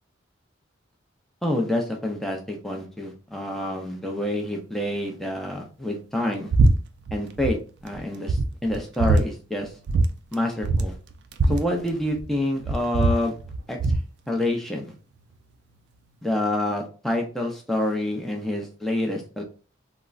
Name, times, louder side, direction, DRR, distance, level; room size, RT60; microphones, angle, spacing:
voice 1, 1.4-6.5 7.1-7.6 7.8-9.7 10.3-10.9 11.5-13.4 13.7-13.9 14.3-14.9 16.2-19.4, left 1 dB, ahead, 0 dB, 0.5 m, -27 dB
sound 1, 6.5-6.7 7.0-7.6 7.9-8.0 8.3-9.2 9.9-10.1 10.3-10.4 10.6-12.3 12.6-14.1, right 2 dB, 60° right, 0.3 m, -21 dB
3.6 x 2.1 x 2.3 m, 0.35 s
head